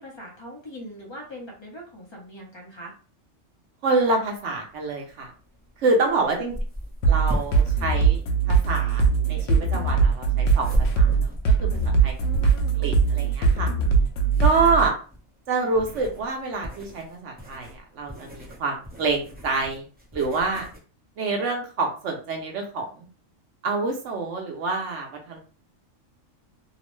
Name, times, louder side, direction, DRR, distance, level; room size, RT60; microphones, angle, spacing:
voice 1, 0.0-2.9 6.0-6.6 12.2-12.8 14.5-14.8, equal, 25° left, -1 dB, 0.7 m, -41 dB
voice 2, 3.8-5.3 5.8-6.5 7.1-8.2 8.5-11.7 12.0-12.1 12.8-13.7 14.4-14.9 15.5-19.8 20.1-20.7 21.2-23.1 23.6-25.4, right 3 dB, 70° right, 2 dB, 0.9 m, -26 dB
sound 1, 4.0-20.8, equal, 10° right, 0.7 m, -36 dB
sound 2, 7.0-14.9, right 5 dB, 75° left, 0.9 m, -20 dB
2.9 x 2.0 x 3.0 m, 0.38 s
omnidirectional pair, 1.3 m